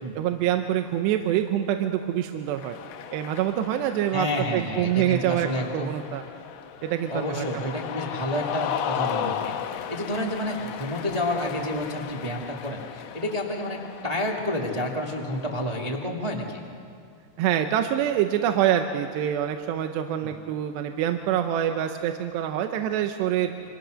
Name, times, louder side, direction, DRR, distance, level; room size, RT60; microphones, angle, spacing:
voice 1, 0.2-2.8 3.1-4.3 4.5-5.5 5.7-6.2 6.8-7.8 17.4-23.5, right 11 dB, 85° right, 6 dB, 3.0 m, -25 dB
Cheering, 2.5-15.9, left 9 dB, 75° left, 2.8 m, -36 dB
voice 2, 4.1-5.9 7.1-16.6 20.2-20.3, left 1 dB, 25° right, -1 dB, 0.8 m, -30 dB
29.0 x 25.5 x 6.4 m, 2.4 s
omnidirectional pair, 4.9 m